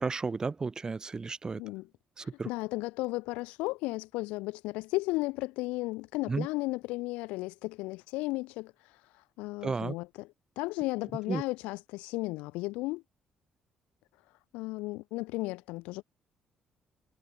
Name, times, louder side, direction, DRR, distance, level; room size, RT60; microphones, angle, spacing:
voice 1, 0.0-1.6 2.2-2.5 6.3-6.5 9.6-9.9 11.3-11.4, right 4 dB, 35° right, 6.3 m, -33 dB
voice 2, 1.6-1.9 2.2-13.0 14.5-16.0, left 22 dB, 80° left, 6.7 m, -35 dB
hypercardioid pair, 55°, 2 cm